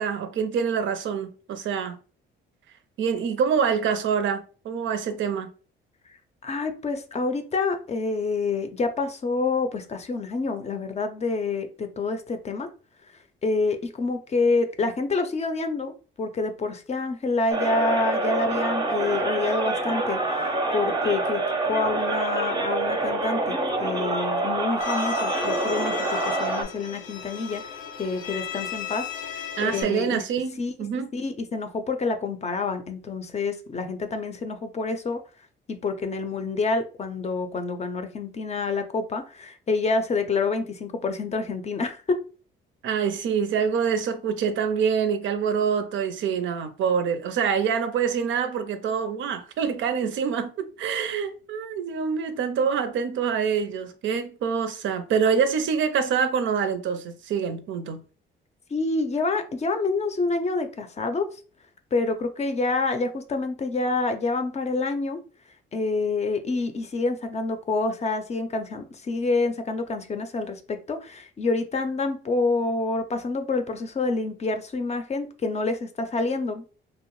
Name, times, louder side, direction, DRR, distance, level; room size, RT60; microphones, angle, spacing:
voice 1, 0.0-2.0 3.0-5.5 29.6-31.1 42.8-58.0, right 6 dB, 70° right, 0.5 m, -26 dB
voice 2, 6.4-12.7 13.4-30.2 30.6-30.7 31.1-35.2 35.7-42.2 58.7-61.3 61.9-65.2 65.7-76.6, left 3 dB, 35° left, 0.5 m, -27 dB
sound 1, 17.5-26.6, right 2 dB, 20° right, 0.6 m, -26 dB
Bowed string instrument, 24.8-29.8, left 8 dB, 85° left, 0.5 m, -35 dB
2.7 x 2.0 x 3.0 m
cardioid pair, 90°, 20 cm